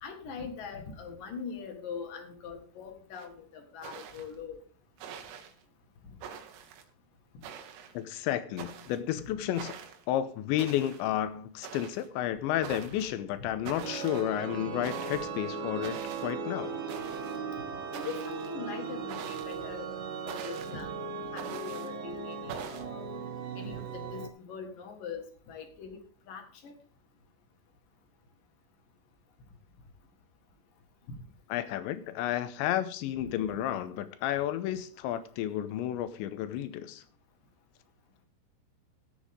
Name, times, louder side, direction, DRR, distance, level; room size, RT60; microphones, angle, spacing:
voice 1, 0.0-4.6 6.1-6.2 13.4-13.5 17.9-19.9 20.3-20.9 21.3-23.1 23.6-26.7, left 6 dB, 55° left, 4 dB, 2.6 m, -42 dB
sound 1, 3.1-3.3 3.8-4.4 5.0-5.5 6.2-6.8 7.4-8.0 8.6-9.0 9.6-10.1 10.6-11.1 11.6-12.1 12.6-13.1 13.7-14.3 14.8-15.3 15.8-16.3 16.9-17.4 17.9-18.6 19.1-19.6 20.3-20.8 21.4-21.9 22.5-22.9, right 8 dB, 85° right, 3.9 m, -44 dB
voice 2, 7.9-9.8 10.1-16.7 31.5-37.0, left 12 dB, 85° left, 11 dB, 2.7 m, -32 dB
sound 2, 13.8-24.3, right 5 dB, 65° right, 4.0 m, -38 dB
17.5 x 8.4 x 3.7 m, 0.42 s
omnidirectional pair, 5.9 m